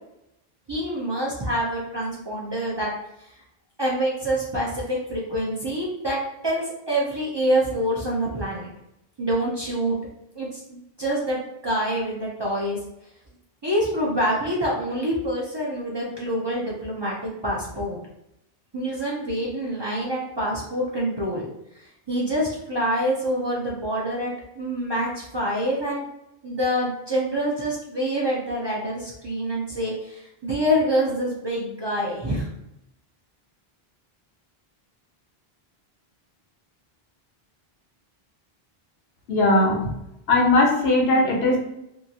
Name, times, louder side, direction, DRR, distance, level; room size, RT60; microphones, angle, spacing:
voice 1, 0.7-2.9 3.8-8.7 9.2-10.0 10.3-11.4 11.6-12.8 13.6-17.2 17.4-18.0 18.7-21.5 21.7-26.0 26.4-32.5, equal, 35° right, -4 dB, 0.5 m, -26 dB
voice 2, 39.3-39.8 40.3-41.6, left 2 dB, 90° left, -1 dB, 1.0 m, -19 dB
2.7 x 2.5 x 2.7 m, 0.84 s
omnidirectional pair, 1.0 m